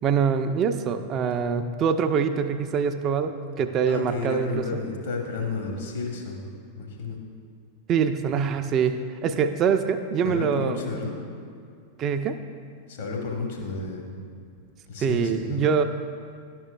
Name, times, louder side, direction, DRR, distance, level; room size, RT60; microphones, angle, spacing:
voice 1, 0.0-4.6 7.9-8.9 9.2-10.8 12.0-12.4 15.0-15.8, right 6 dB, 30° right, 8 dB, 0.4 m, -24 dB
voice 2, 3.9-6.5 6.7-7.2 10.2-11.3 12.9-14.2 14.9-15.6, left 4 dB, 55° left, 1 dB, 1.1 m, -32 dB
10.5 x 6.1 x 2.3 m, 2.3 s
figure-of-eight pair, 90°, 0 cm